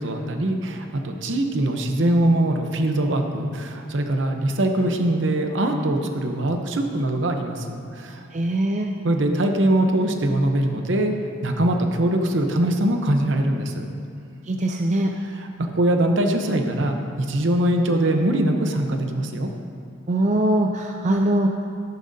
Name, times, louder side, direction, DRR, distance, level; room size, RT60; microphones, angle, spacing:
voice 1, 0.0-8.2 9.0-11.1 11.4-13.9 15.2-19.5, right 1 dB, 60° right, 4 dB, 0.8 m, -22 dB
voice 2, 8.3-8.9 14.5-15.1 20.1-21.5, right 1 dB, 35° right, 2 dB, 0.4 m, -21 dB
13.5 x 11.5 x 2.7 m, 2.4 s
head